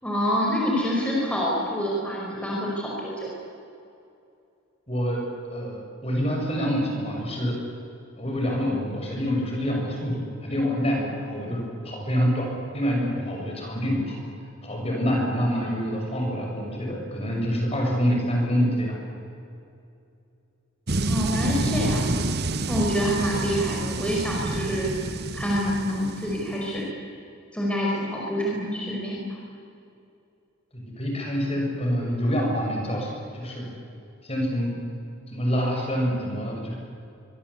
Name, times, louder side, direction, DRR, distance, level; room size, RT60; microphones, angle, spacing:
voice 1, 0.0-3.3 21.1-22.2 22.7-25.0 25.3-26.9 27.5-29.4, equal, 5° left, -4 dB, 5.3 m, -26 dB
voice 2, 4.9-5.2 5.5-7.5 8.2-12.5 12.7-14.2 14.6-19.0 30.7-33.7 34.2-34.7 35.3-36.7, equal, 30° left, 0 dB, 6.6 m, -26 dB
sound 1, 20.9-26.8, right 2 dB, 50° right, 1.3 m, -28 dB
25.0 x 24.0 x 8.4 m, 2.6 s
head